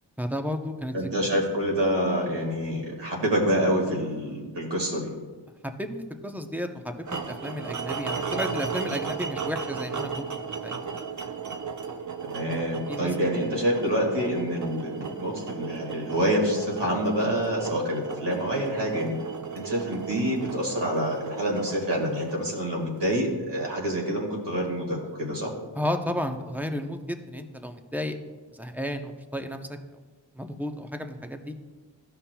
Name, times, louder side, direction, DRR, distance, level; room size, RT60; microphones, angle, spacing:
voice 1, 0.2-0.9 5.6-10.8 12.9-13.1 25.8-28.2 28.5-29.8 30.4-31.5, equal, 5° right, 5 dB, 0.7 m, -32 dB
voice 2, 0.9-5.1 12.3-19.2 19.5-25.5, equal, 70° right, -2 dB, 2.1 m, -27 dB
sound 1, 7.1-23.2, right 5 dB, 40° right, 0.6 m, -35 dB
13.5 x 5.7 x 2.3 m, 1.4 s
cardioid pair, 40°, 44 cm